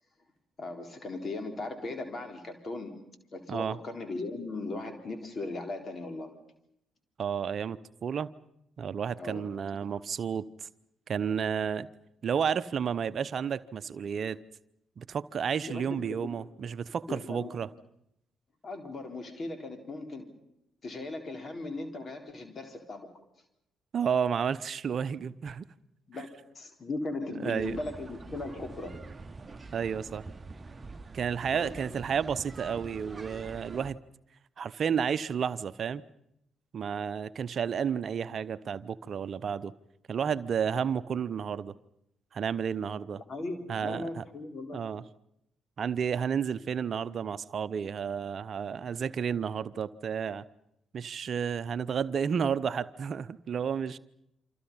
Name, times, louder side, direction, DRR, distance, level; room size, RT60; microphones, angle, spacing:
voice 1, 0.6-3.0 3.3-6.3 9.2-9.5 9.8-9.9 15.7-16.0 17.1-17.5 18.6-20.3 20.8-23.1 26.1-29.0 31.5-32.1 43.1-44.8, left 2 dB, 45° left, 4.1 m, -38 dB
voice 2, 3.5-3.8 7.2-8.3 8.8-10.7 11.1-11.9 12.2-14.4 15.0-17.7 23.9-25.7 27.4-27.8 29.7-30.2 31.1-34.0 34.6-36.0 36.7-39.7 40.1-41.7 42.3-43.2 43.7-44.2 44.7-45.0 45.8-50.4 50.9-54.0, right 7 dB, 50° right, 0.8 m, -31 dB
sound 1, 27.6-33.9, right 3 dB, 30° right, 1.1 m, -45 dB
27.5 x 26.0 x 5.6 m
figure-of-eight pair, 40°, 0 cm